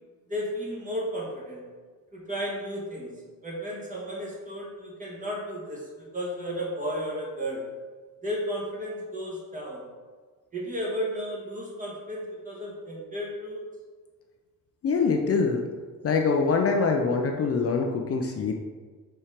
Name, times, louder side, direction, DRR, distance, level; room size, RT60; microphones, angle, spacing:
voice 1, 0.3-1.6 2.1-7.6 8.2-9.8 10.5-13.6, equal, 25° right, -4 dB, 1.7 m, -33 dB
voice 2, 14.8-15.6 16.0-18.5, left 4 dB, 45° left, 3 dB, 0.5 m, -24 dB
4.4 x 4.3 x 5.0 m, 1.4 s
cardioid pair, 140°, 33 cm